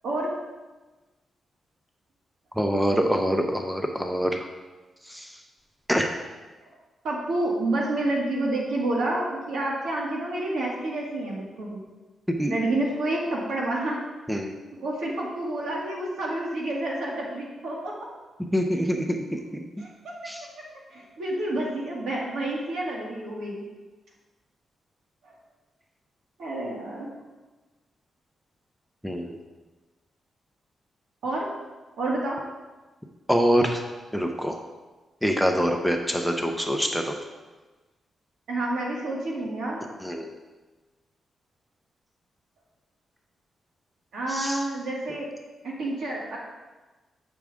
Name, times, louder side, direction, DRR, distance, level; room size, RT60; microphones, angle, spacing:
voice 1, 2.6-4.5 5.1-5.3 5.9-6.1 12.4-12.5 14.3-14.5 18.5-19.4 20.3-20.4 29.0-29.4 33.3-33.8 34.1-34.6 35.2-37.2 40.0-40.3 44.3-44.6, equal, ahead, 3 dB, 0.5 m, -25 dB
voice 2, 7.0-11.8 12.5-14.0 14.7-17.9 19.8-20.1 20.9-23.6 25.2-25.4 26.4-27.1 31.2-31.5 32.0-32.4 38.5-39.8 44.1-45.3 45.6-46.4, right 2 dB, 75° right, -3 dB, 1.9 m, -29 dB
8.5 x 6.1 x 3.5 m, 1.2 s
wide cardioid pair, 160°, 0 cm